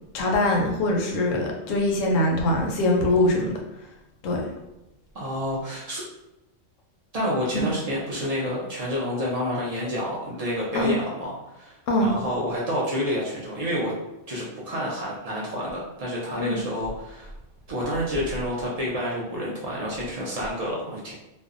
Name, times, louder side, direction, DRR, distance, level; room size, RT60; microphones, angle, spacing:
voice 1, 0.1-3.5 4.2-4.4 10.7-10.9 11.9-12.1 16.4-16.6, left 1 dB, 85° left, 0 dB, 1.0 m, -22 dB
voice 2, 5.1-6.0 7.1-13.9 14.3-17.3 17.7-21.1, equal, 90° right, -5 dB, 0.3 m, -29 dB
2.5 x 2.0 x 2.4 m, 0.94 s
omnidirectional pair, 1.3 m